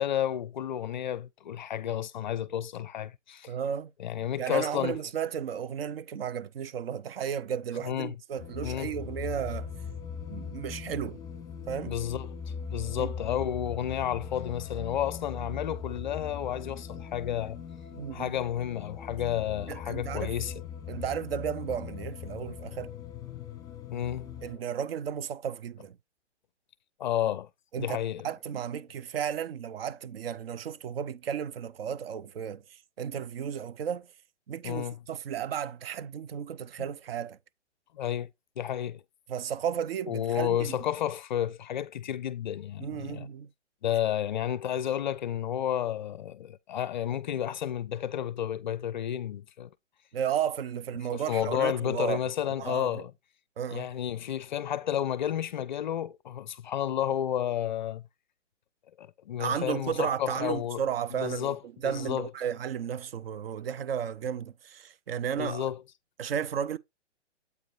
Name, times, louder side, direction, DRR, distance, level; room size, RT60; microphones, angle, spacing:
voice 1, 0.0-3.5 4.0-5.0 7.8-8.1 8.6-8.9 11.8-12.3 12.7-17.6 18.1-20.5 23.9-24.3 24.6-24.7 27.0-27.5 27.8-28.3 34.6-35.0 37.9-38.3 38.6-39.0 40.1-43.3 43.8-49.7 51.1-53.1 53.7-58.0 59.0-60.8 61.1-62.3 65.4-65.8, left 10 dB, 40° left, 0.4 m, -31 dB
voice 2, 3.5-3.9 4.4-9.7 10.3-11.2 11.7-12.0 12.9-13.1 17.9-18.3 19.7-20.4 20.9-22.9 24.4-26.0 27.7-28.0 28.2-32.6 33.0-34.1 34.5-37.4 39.3-40.8 42.8-43.5 50.1-52.2 52.6-53.0 53.6-53.9 59.4-61.6 61.8-65.7 66.2-66.8, right 8 dB, 55° right, 0.6 m, -33 dB
sound 1, 8.4-24.6, left 6 dB, 10° left, 1.5 m, -40 dB
8.1 x 4.7 x 4.1 m
hypercardioid pair, 135°, 36 cm